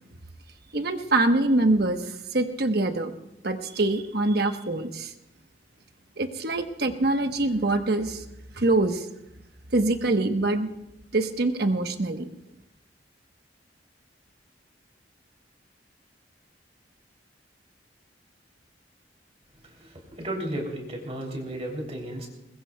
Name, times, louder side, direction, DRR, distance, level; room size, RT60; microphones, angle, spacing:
voice 1, 0.7-3.1 3.4-5.1 6.2-8.2 8.6-9.1 9.7-10.7 11.1-12.3, right 2 dB, 60° right, 6 dB, 1.2 m, -24 dB
voice 2, 20.2-22.3, right 1 dB, 35° right, 0 dB, 3.1 m, -33 dB
21.5 x 20.5 x 2.3 m, 0.85 s
head